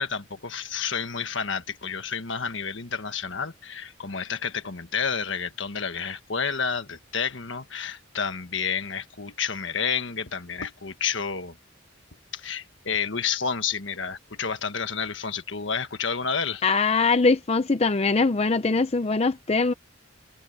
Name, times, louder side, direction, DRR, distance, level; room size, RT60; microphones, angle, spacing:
voice 1, 0.0-11.5 12.3-16.6, left 6 dB, 65° left, 1.5 m, -30 dB
voice 2, 16.6-19.7, left 4 dB, 30° left, 0.5 m, -22 dB
head